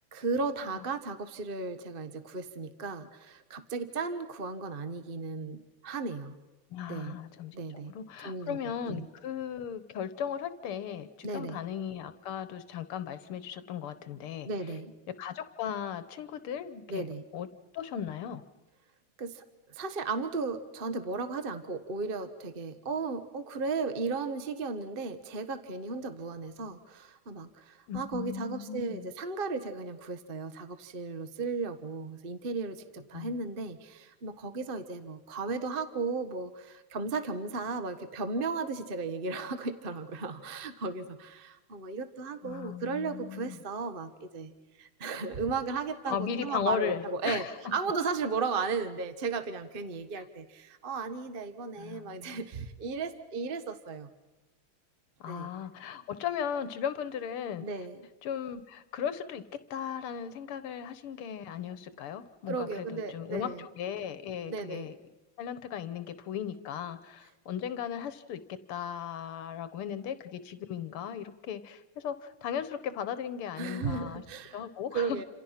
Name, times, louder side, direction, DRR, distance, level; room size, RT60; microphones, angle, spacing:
voice 1, 0.1-6.4 6.9-7.2 7.5-7.9 8.2-8.6 8.9-9.1 11.2-11.6 14.4-14.9 16.9-17.2 19.2-19.4 19.7-44.5 44.8-47.4 47.7-54.1 55.3-55.5 57.6-58.0 62.5-63.6 64.5-64.9 73.6-74.6 74.9-75.2, right 4 dB, 30° right, 9 dB, 1.2 m, -35 dB
voice 2, 6.7-14.5 15.2-17.1 17.3-17.5 17.7-18.4 27.9-29.1 33.1-33.4 42.4-43.6 46.1-47.6 50.2-50.3 51.8-52.5 55.2-57.7 58.2-59.4 59.7-65.0 65.4-68.4 68.7-74.2 74.5-75.2, left 8 dB, 80° left, 12 dB, 1.9 m, -37 dB
28.5 x 27.5 x 5.8 m, 1.1 s
omnidirectional pair, 2.4 m